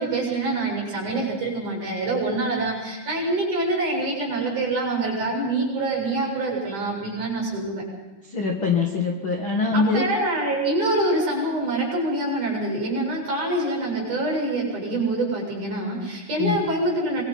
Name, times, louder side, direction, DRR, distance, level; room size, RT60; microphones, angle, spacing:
voice 1, 0.0-7.8 9.7-17.2, right 2 dB, 40° right, -1 dB, 9.0 m, -25 dB
voice 2, 8.2-10.0 16.4-16.6, left 4 dB, 40° left, 3 dB, 1.9 m, -23 dB
26.0 x 23.0 x 5.8 m, 1.3 s
omnidirectional pair, 5.2 m